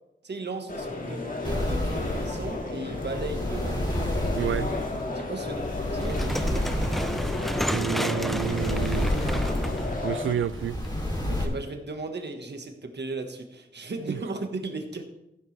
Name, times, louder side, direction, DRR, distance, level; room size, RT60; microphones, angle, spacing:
voice 1, 0.2-3.9 5.1-6.7 11.3-15.0, right 3 dB, 60° right, 1.6 m, -36 dB
sound 1, 0.7-10.4, left 2 dB, 45° left, 2.1 m, -33 dB
sound 2, 1.4-11.4, left 1 dB, 20° left, 3.2 m, -30 dB
voice 2, 4.4-4.7 7.7-9.1 10.0-10.8 14.1-14.2, right 9 dB, 80° right, 0.4 m, -29 dB
sound 3, 6.0-11.1, equal, ahead, 0.6 m, -32 dB
14.5 x 10.5 x 3.4 m
wide cardioid pair, 75°, 20 cm